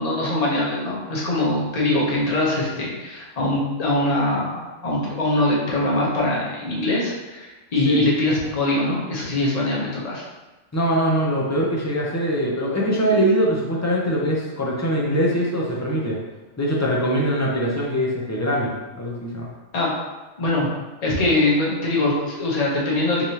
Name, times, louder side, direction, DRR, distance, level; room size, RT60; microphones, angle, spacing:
voice 1, 0.0-10.2 19.7-19.9 20.4-20.7 21.0-23.2, left 2 dB, 35° left, -4 dB, 0.9 m, -22 dB
voice 2, 10.7-16.2 16.6-19.5, equal, 20° left, -3 dB, 0.5 m, -22 dB
3.9 x 3.2 x 2.8 m, 1.1 s
omnidirectional pair, 1.2 m